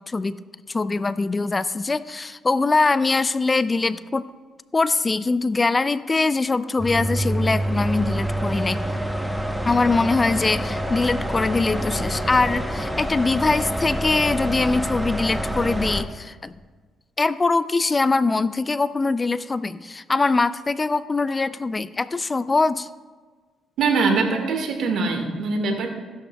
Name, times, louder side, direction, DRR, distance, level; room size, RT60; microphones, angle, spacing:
voice 1, 0.1-0.4 0.7-4.3 4.7-8.8 9.6-16.5 17.2-22.9, left 3 dB, 25° left, 15 dB, 0.3 m, -22 dB
sound 1, 6.8-16.0, right 1 dB, 5° right, 0.9 m, -27 dB
voice 2, 23.8-25.9, right 4 dB, 75° right, 3 dB, 1.6 m, -22 dB
15.5 x 11.5 x 2.3 m, 1.4 s
cardioid pair, 90°, 0 cm